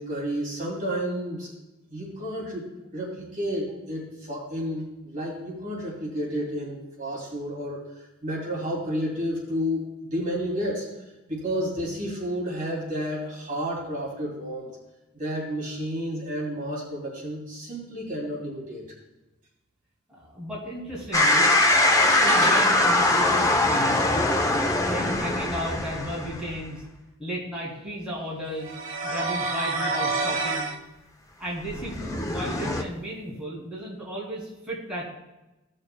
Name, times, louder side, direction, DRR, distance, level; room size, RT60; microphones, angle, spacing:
voice 1, 0.0-1.5 1.9-7.9 8.2-10.9 11.3-14.7 15.1-18.8, equal, 40° right, -4 dB, 2.9 m, -31 dB
voice 2, 20.1-21.5 21.9-24.3 24.8-26.8 27.2-28.7 29.0-30.7 31.4-35.1, equal, 5° right, -7 dB, 2.8 m, -34 dB
sound 1, 21.1-26.6 31.7-32.8, left 2 dB, 15° left, 0.7 m, -22 dB
sound 2, 21.5-24.2, right 3 dB, 85° right, 1.9 m, -33 dB
sound 3, 28.6-30.8, right 3 dB, 70° right, 1.1 m, -28 dB
16.5 x 6.6 x 2.3 m, 1.0 s
head